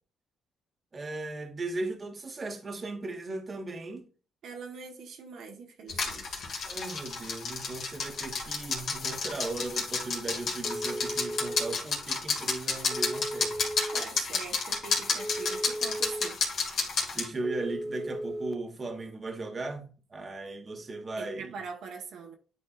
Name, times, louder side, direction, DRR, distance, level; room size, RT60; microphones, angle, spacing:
voice 1, 0.9-4.1 6.7-13.6 17.1-21.5, right 2 dB, 35° right, 1.3 m, -37 dB
voice 2, 4.4-6.4 13.9-16.4 21.1-22.4, right 5 dB, 75° right, 1.3 m, -43 dB
sound 1, 5.9-17.3, left 4 dB, 60° left, 2.0 m, -31 dB
Telephone, 10.6-11.7 12.9-14.0 15.2-16.3 17.4-18.5, right 1 dB, 5° left, 0.8 m, -36 dB
10.0 x 4.3 x 2.5 m
cardioid pair, 90°, 0 cm